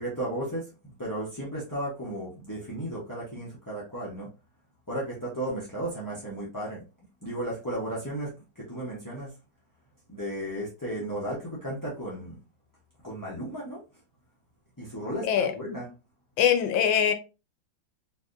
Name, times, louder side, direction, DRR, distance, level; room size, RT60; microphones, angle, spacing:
voice 1, 0.0-4.3 4.9-6.8 7.2-9.4 10.1-12.4 13.0-13.8 14.8-15.9, right 1 dB, 20° left, 0.5 m, -34 dB
voice 2, 16.4-17.1, left 8 dB, 80° left, 1.4 m, -22 dB
4.3 x 2.8 x 2.5 m
omnidirectional pair, 2.0 m